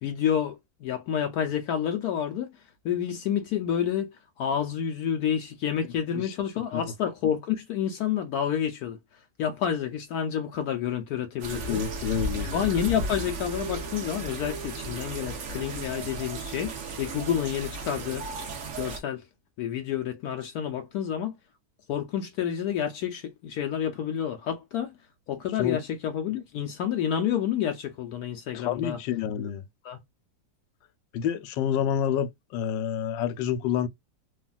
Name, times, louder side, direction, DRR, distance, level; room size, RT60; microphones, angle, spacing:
voice 1, 0.0-9.0 9.4-11.8 12.4-16.7 17.0-18.3 18.8-19.3 19.6-21.4 21.9-24.9 25.3-29.0 29.4-29.5 29.8-30.0, left 9 dB, 70° left, 0.9 m, -29 dB
sound 1, 11.4-19.0, right 2 dB, 55° right, 0.9 m, -35 dB
voice 2, 11.7-12.6 25.6-25.8 28.5-29.6 31.1-33.9, left 9 dB, 85° left, 1.3 m, -28 dB
3.3 x 2.3 x 2.2 m
omnidirectional pair, 1.9 m